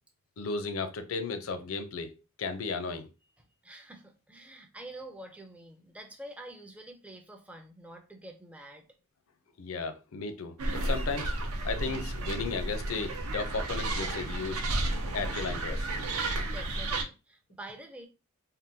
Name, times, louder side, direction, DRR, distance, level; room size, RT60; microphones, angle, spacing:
voice 1, 0.4-2.1 2.4-3.1 9.6-11.3 11.6-14.6 15.1-16.0, left 4 dB, 65° left, 0.5 m, -35 dB
voice 2, 3.4-8.9 16.4-18.1, right 1 dB, 5° right, 0.4 m, -47 dB
sound 1, 10.6-17.0, right 2 dB, 80° right, 0.7 m, -32 dB
3.6 x 2.2 x 2.6 m
head